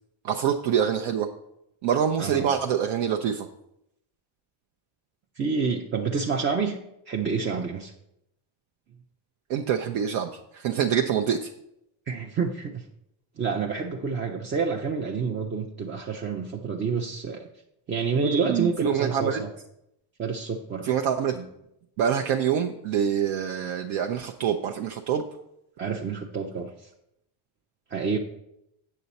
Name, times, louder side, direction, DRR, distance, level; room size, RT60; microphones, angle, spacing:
voice 1, 0.2-1.3 1.8-3.5 9.5-11.5 18.2-19.4 20.8-21.4 22.0-25.2, right 8 dB, 70° right, 3 dB, 0.7 m, -25 dB
voice 2, 5.4-6.8 7.1-7.9 12.1-12.8 13.4-17.5 17.9-19.5 20.2-20.9 21.3-21.4 25.8-26.9 27.9-28.2, right 5 dB, 25° right, 1 dB, 0.4 m, -28 dB
8.4 x 6.8 x 4.1 m, 0.82 s
cardioid pair, 155°, 50 cm